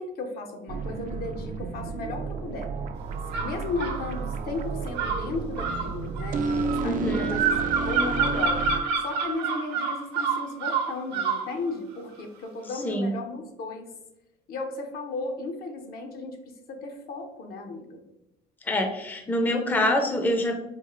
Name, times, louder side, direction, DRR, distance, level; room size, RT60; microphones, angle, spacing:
voice 1, 0.0-2.7 3.4-8.6 9.0-13.9 14.5-18.0, left 3 dB, 65° left, 4 dB, 0.6 m, -35 dB
sound 1, 0.7-8.8, right 4 dB, 50° right, 0.4 m, -31 dB
sound 2, 3.3-4.0 4.9-11.5, right 5 dB, 85° right, 0.8 m, -28 dB
voice 2, 6.8-7.4 12.8-13.1 18.6-20.5, left 1 dB, 10° left, 3 dB, 0.4 m, -25 dB
3.7 x 2.4 x 2.9 m, 0.88 s
cardioid pair, 110°, 17 cm